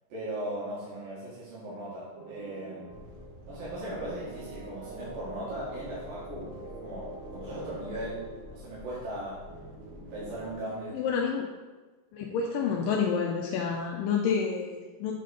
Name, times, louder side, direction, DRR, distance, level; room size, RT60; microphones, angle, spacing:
voice 1, 0.1-3.0 3.5-6.5 6.8-9.4 9.9-11.0, right 1 dB, 90° right, -9 dB, 3.3 m, -38 dB
sound 1, 2.1-10.6, right 2 dB, 55° right, 2.3 m, -45 dB
sound 2, 2.9-10.5, left 2 dB, 70° right, 1.7 m, -49 dB
voice 2, 10.9-11.5 12.1-15.1, left 6 dB, 80° left, 0 dB, 2.2 m, -29 dB
7.6 x 4.1 x 5.0 m, 1.3 s
omnidirectional pair, 3.9 m